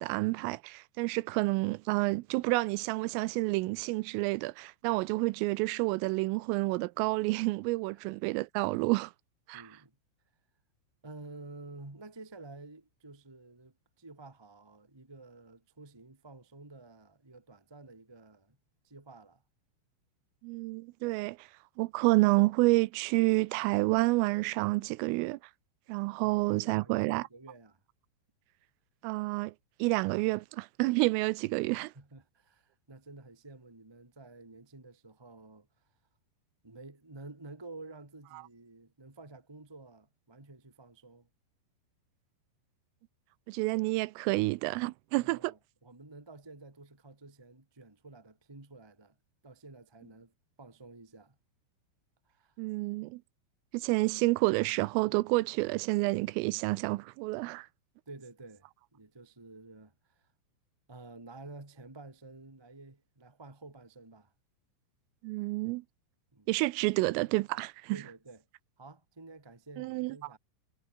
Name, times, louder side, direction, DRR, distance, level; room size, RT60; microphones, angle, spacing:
voice 1, 0.0-9.1 9.5-9.7 20.4-21.5 21.8-25.4 25.9-27.3 29.0-29.5 29.8-31.9 38.3-38.4 43.5-45.5 52.6-53.2 53.7-57.7 65.2-65.8 66.5-68.0 69.8-70.2, right 23 dB, 85° right, 3.2 m, -29 dB
voice 2, 9.5-9.9 11.0-18.6 18.8-19.4 26.2-27.8 31.9-35.7 36.6-41.3 45.2-49.1 49.4-50.3 50.6-51.4 52.3-52.5 58.0-59.9 60.9-64.3 66.3-66.5 67.9-68.4 68.8-70.4, right 2 dB, 25° right, 0.5 m, -51 dB
omnidirectional pair, 5.9 m